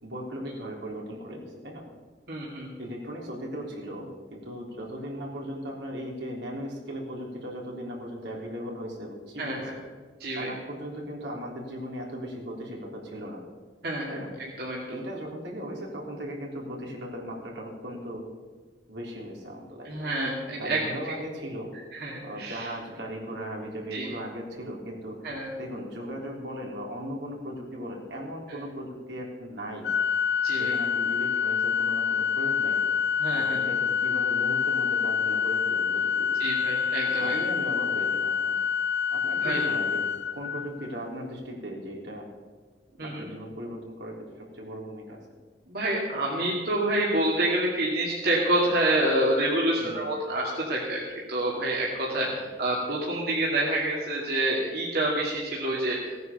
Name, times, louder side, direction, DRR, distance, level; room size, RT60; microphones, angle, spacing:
voice 1, 0.0-1.8 2.8-9.7 10.4-13.4 14.1-14.3 14.9-18.2 18.9-19.9 20.5-21.7 22.2-25.2 25.6-29.9 30.5-32.8 33.3-36.4 37.1-38.5 39.1-40.0 40.3-42.3 43.0-45.2 49.8-50.1 52.1-52.5, equal, 80° right, -1 dB, 3.7 m, -37 dB
voice 2, 2.3-2.7 9.4-9.8 10.2-10.5 13.8-14.8 19.8-21.0 21.9-22.7 23.9-24.1 25.2-25.5 28.5-28.6 30.4-30.8 33.2-33.6 36.4-37.4 39.4-39.6 43.0-43.2 45.7-51.0 51.3-56.1, right 1 dB, 60° right, -4 dB, 2.5 m, -28 dB
Organ, 29.8-40.9, left 7 dB, 65° left, 0.6 m, -27 dB
16.5 x 9.4 x 6.8 m, 1.4 s
head